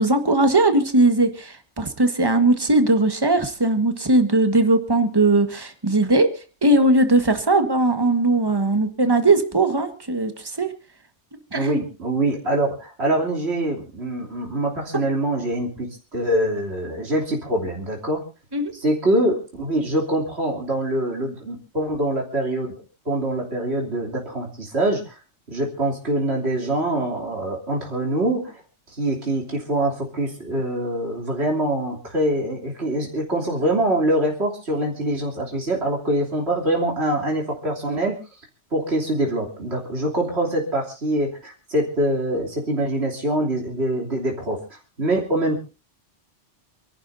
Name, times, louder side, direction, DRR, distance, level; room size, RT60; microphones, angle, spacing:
voice 1, 0.0-10.7 11.5-11.8 18.5-18.7, right 2 dB, 20° right, 8 dB, 1.5 m, -19 dB
voice 2, 11.5-18.2 18.7-22.7 23.0-25.1 25.5-28.6 29.0-38.2 38.7-44.6 45.0-45.6, right 1 dB, 65° right, -1 dB, 3.4 m, -24 dB
28.0 x 11.5 x 2.7 m, 0.32 s
omnidirectional pair, 1.2 m